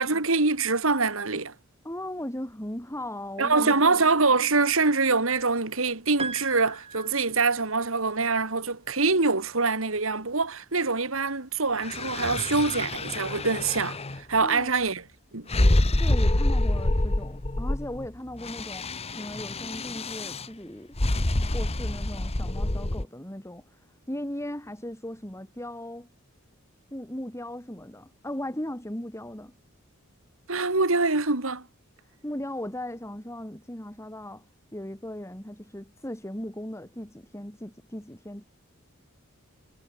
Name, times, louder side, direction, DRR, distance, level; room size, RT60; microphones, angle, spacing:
voice 1, 0.0-1.5 3.4-15.0 15.3-15.5 30.5-31.6, right 3 dB, 70° right, 2.7 m, -24 dB
voice 2, 1.8-4.0 14.4-14.7 15.7-18.9 19.1-21.0 21.5-23.7 24.1-26.1 26.9-29.5 32.2-34.4 34.7-38.4, left 1 dB, 15° left, 5.0 m, -37 dB
Piano, 6.2-7.9, right 4 dB, 30° right, 3.7 m, -38 dB
sound 1, 11.8-14.2 15.5-18.1 18.3-20.5 21.0-23.0, left 1 dB, 30° left, 1.2 m, -27 dB
head